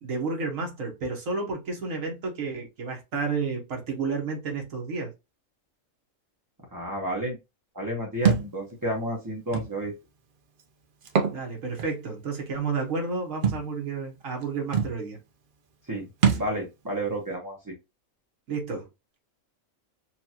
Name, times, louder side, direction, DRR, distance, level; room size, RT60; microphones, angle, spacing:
voice 1, 0.0-5.1 11.3-15.2 18.5-18.9, right 4 dB, 85° right, 1.6 m, -31 dB
voice 2, 6.7-7.4 7.7-9.9 15.9-16.1 16.4-17.7, right 1 dB, 15° right, 0.9 m, -31 dB
Thump thud, 8.3-8.5 9.5-9.7 11.0-11.4 11.8-11.9 13.4-13.6 14.4-14.5 14.7-15.0 16.2-16.5, right 6 dB, 50° right, 0.8 m, -23 dB
4.5 x 2.6 x 2.8 m
omnidirectional pair, 1.4 m